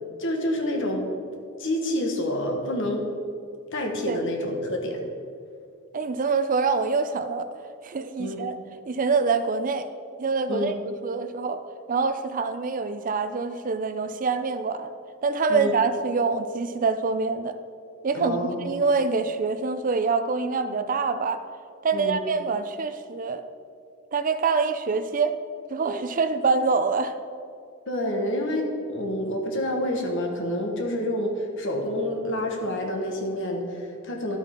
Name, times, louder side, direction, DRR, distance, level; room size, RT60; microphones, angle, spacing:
voice 1, 0.2-1.1 1.6-3.1 3.7-5.0 8.2-8.4 10.5-10.7 15.5-15.8 18.1-18.7 21.9-22.2 27.9-34.4, left 1 dB, 65° left, 1 dB, 1.5 m, -28 dB
voice 2, 5.9-7.5 7.8-8.6 8.9-9.9 10.2-11.6 11.9-14.9 15.2-17.6 18.0-21.4 21.8-23.5 24.1-25.4 25.7-27.1, right 4 dB, 40° right, 10 dB, 0.5 m, -25 dB
12.0 x 8.3 x 3.7 m, 2.5 s
head